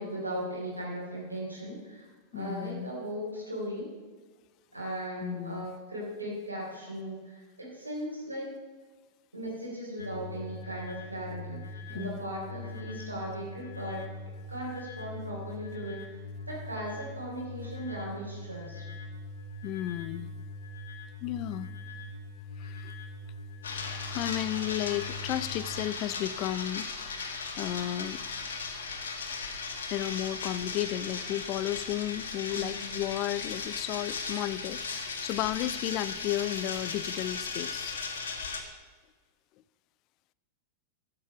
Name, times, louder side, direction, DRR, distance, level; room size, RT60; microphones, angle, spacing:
voice 1, 0.0-3.9 4.7-8.6 9.3-14.1 14.5-16.2 16.5-18.8 32.5-33.0, equal, 85° right, -4 dB, 3.5 m, -38 dB
voice 2, 2.3-2.9 5.2-5.7 11.9-12.2 19.6-20.3 21.2-21.7 22.6-22.9 23.8-26.9 27.6-28.2 29.9-38.0, left 13 dB, 40° left, 18 dB, 0.5 m, -33 dB
sound 1, 10.0-25.9, left 2 dB, 80° left, 1.8 m, -42 dB
sound 2, 23.6-38.6, left 4 dB, 65° left, 1.5 m, -37 dB
13.0 x 6.9 x 6.8 m, 1.5 s
figure-of-eight pair, 90°, 0 cm